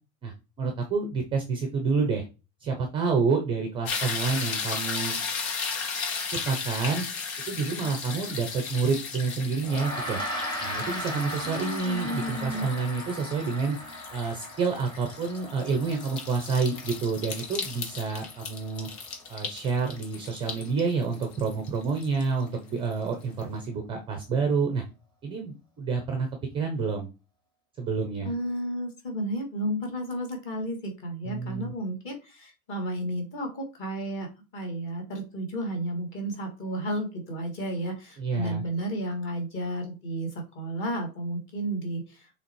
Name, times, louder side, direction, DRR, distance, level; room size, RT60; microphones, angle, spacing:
voice 1, 0.2-2.2 2.6-5.2 6.3-7.0 7.5-10.2 10.6-13.8 14.1-18.9 19.3-24.8 25.2-26.3 26.5-27.1 27.8-28.3 31.3-31.7 38.2-38.6, right 4 dB, 15° right, 4 dB, 0.5 m, -28 dB
sound 1, 3.9-22.9 23.4-23.5, left 5 dB, 80° left, 2.1 m, -36 dB
Gong, 9.6-19.3, equal, 10° left, 1.2 m, -38 dB
voice 2, 11.4-12.7 28.2-42.3, right 1 dB, 30° left, 2 dB, 2.1 m, -32 dB
6.6 x 3.4 x 4.6 m, 0.30 s
supercardioid pair, 170°, 42 cm